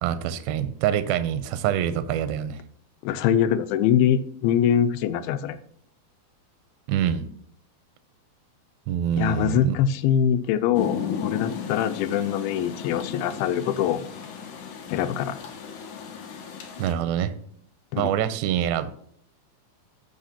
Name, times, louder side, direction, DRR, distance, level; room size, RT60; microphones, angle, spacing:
voice 1, 0.0-2.6 6.9-7.3 8.9-9.8 16.8-17.3 18.0-18.9, right 10 dB, 80° right, 12 dB, 2.4 m, -25 dB
voice 2, 3.0-5.6 9.2-14.0 14.9-15.4 17.9-18.1, left 9 dB, 90° left, 12 dB, 2.5 m, -23 dB
Rain, 10.7-16.9, left 7 dB, 65° left, 2.3 m, -34 dB
15.5 x 5.6 x 2.8 m, 0.65 s
omnidirectional pair, 4.3 m